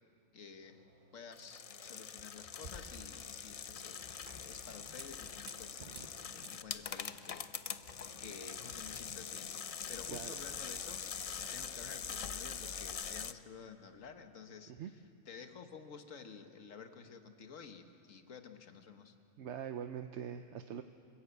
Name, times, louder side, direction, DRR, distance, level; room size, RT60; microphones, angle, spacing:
voice 1, 0.3-0.8 1.1-4.1 4.4-7.5 8.2-19.2, left 6 dB, 85° left, 7 dB, 1.6 m, -52 dB
sound 1, 0.6-9.9, right 3 dB, 40° right, 1.2 m, -58 dB
sound 2, 1.3-13.3, left 6 dB, 50° left, 0.4 m, -43 dB
voice 2, 19.4-20.8, right 8 dB, 70° right, 8 dB, 1.0 m, -43 dB
27.5 x 16.0 x 8.1 m, 2.5 s
omnidirectional pair, 1.3 m